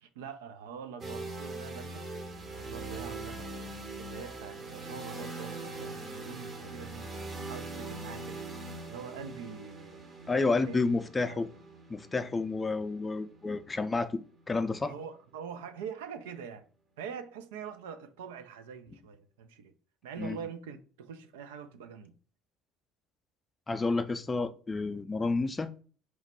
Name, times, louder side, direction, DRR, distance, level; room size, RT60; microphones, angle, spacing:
voice 1, 0.0-2.1 2.5-3.5 4.0-7.1 7.4-8.4 8.9-10.0 10.4-10.8 11.3-11.4 14.8-16.6 17.0-19.7 20.0-22.2, right 7 dB, 75° right, 0.3 m, -44 dB
sound 1, 1.0-14.9, right 2 dB, 35° right, 0.7 m, -42 dB
voice 2, 10.3-11.5 11.9-14.1 14.5-14.9 20.2-20.4 23.7-25.8, left 3 dB, 20° left, 0.4 m, -30 dB
3.0 x 2.1 x 4.1 m
figure-of-eight pair, 60°, 0 cm